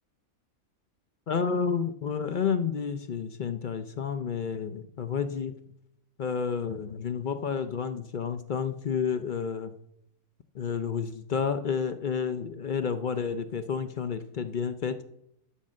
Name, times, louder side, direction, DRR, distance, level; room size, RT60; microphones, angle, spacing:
voice 1, 1.3-5.6 6.2-9.7 10.5-15.0, left 6 dB, 55° left, 10 dB, 0.6 m, -30 dB
11.5 x 5.3 x 7.4 m, 0.75 s
omnidirectional pair, 1.5 m